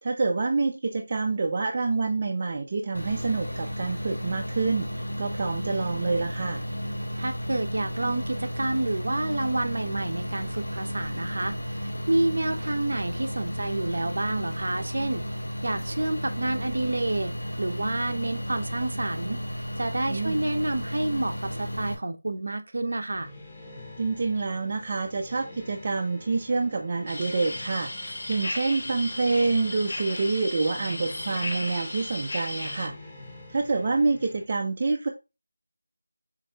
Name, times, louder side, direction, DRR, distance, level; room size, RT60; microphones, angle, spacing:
voice 1, 0.0-6.6 20.1-20.4 24.0-33.0 33.5-35.1, right 3 dB, 25° right, 0.4 m, -27 dB
sound 1, 2.9-21.9, equal, 80° left, 2.0 m, -33 dB
voice 2, 7.2-15.2 15.6-17.3 17.6-23.3, right 2 dB, 55° right, 0.8 m, -29 dB
sound 2, 23.1-34.4, left 2 dB, 10° left, 0.7 m, -46 dB
sound 3, 27.1-32.9, left 1 dB, 40° left, 1.0 m, -35 dB
7.1 x 2.6 x 2.8 m
figure-of-eight pair, 175°, 0 cm